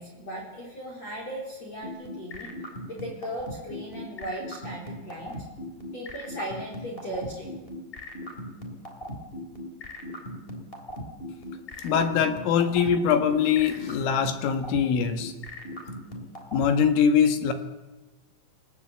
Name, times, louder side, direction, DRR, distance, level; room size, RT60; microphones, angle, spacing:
voice 1, 0.0-2.5 2.9-5.4 5.9-7.6, equal, 35° left, -2 dB, 4.6 m, -37 dB
sound 1, 1.8-16.7, left 1 dB, 15° left, 2.8 m, -38 dB
voice 2, 11.8-15.3 16.5-17.5, left 7 dB, 75° left, 8 dB, 4.2 m, -23 dB
28.5 x 17.5 x 8.1 m, 1.1 s
omnidirectional pair, 5.9 m